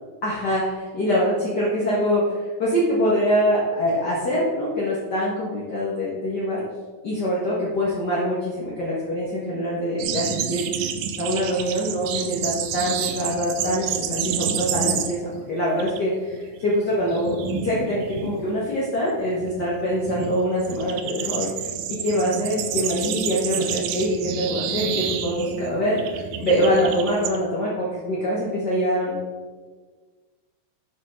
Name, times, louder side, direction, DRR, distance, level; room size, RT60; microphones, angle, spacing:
voice 1, 0.2-6.6 7.0-17.3 17.6-29.2, equal, 45° left, -7 dB, 1.4 m, -24 dB
sound 1, 10.0-15.4 15.7-16.0 16.3-27.4, right 8 dB, 80° right, 1.6 m, -29 dB
7.1 x 5.8 x 5.9 m, 1.4 s
omnidirectional pair, 4.1 m